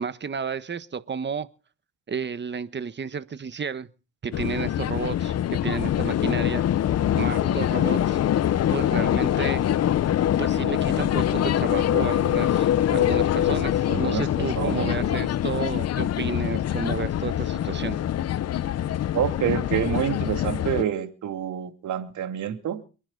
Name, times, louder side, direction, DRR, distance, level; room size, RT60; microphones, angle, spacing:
voice 1, 0.0-1.5 2.1-3.9 4.2-6.7 7.1-8.2 8.7-9.6 10.4-18.0, right 6 dB, 35° right, 1.4 m, -32 dB
sound 1, 4.3-20.8, left 11 dB, 55° left, 0.8 m, -24 dB
voice 2, 13.9-15.1 19.1-22.8, right 9 dB, 75° right, 2.5 m, -28 dB
27.5 x 10.5 x 4.0 m
cardioid pair, 90°, 30 cm